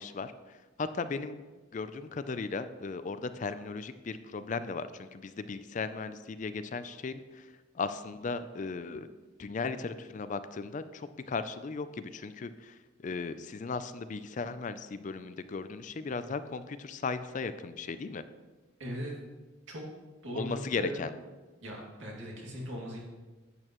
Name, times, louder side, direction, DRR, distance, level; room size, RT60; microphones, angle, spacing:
voice 1, 0.0-1.4 1.7-9.1 9.4-18.2 20.4-21.1, left 4 dB, 40° left, 12 dB, 0.4 m, -37 dB
voice 2, 18.8-19.1 19.7-19.8 20.2-21.0 21.6-23.0, right 1 dB, 75° right, -3 dB, 2.4 m, -39 dB
10.5 x 8.6 x 3.0 m, 1.3 s
head